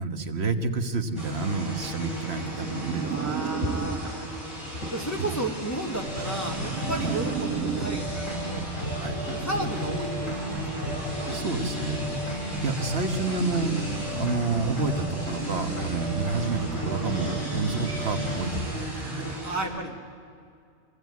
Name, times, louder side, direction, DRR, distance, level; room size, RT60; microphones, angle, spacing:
voice 1, 0.0-3.5 5.2-5.4 7.0-7.2 9.0-9.2 11.0-12.2 12.6-19.4, right 4 dB, 50° right, 7 dB, 1.6 m, -30 dB
sound 1, 1.2-19.6, equal, 90° left, 6.8 m, -36 dB
sound 2, 2.2-4.4 5.4-8.4, right 9 dB, 80° right, 1.3 m, -34 dB
voice 2, 3.0-4.0 4.9-8.7 9.4-11.0 13.5-13.6 15.8-15.9 19.4-20.0, right 1 dB, 10° left, -1 dB, 2.2 m, -33 dB
sound 3, 5.9-18.7, right 1 dB, 70° left, 6.2 m, -32 dB
26.0 x 17.0 x 9.4 m, 2.3 s
omnidirectional pair, 1.4 m